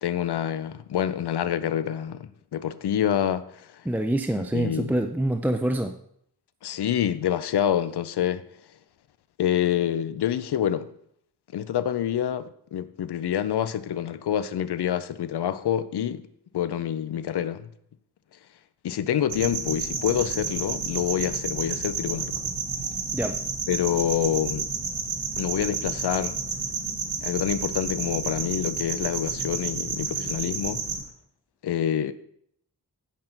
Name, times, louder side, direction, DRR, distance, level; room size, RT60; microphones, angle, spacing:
voice 1, 0.0-3.8 4.5-4.9 6.6-8.4 9.4-10.9 11.5-16.2 16.5-17.7 18.8-22.4 23.7-24.7 25.4-26.4 27.2-30.8 31.6-32.1, left 10 dB, 80° left, 0.6 m, -27 dB
voice 2, 3.9-6.0 23.1-23.4, right 1 dB, 5° right, 0.4 m, -26 dB
sound 1, 19.3-31.0, right 5 dB, 80° right, 1.6 m, -31 dB
10.0 x 5.5 x 4.4 m
wide cardioid pair, 90°, 39 cm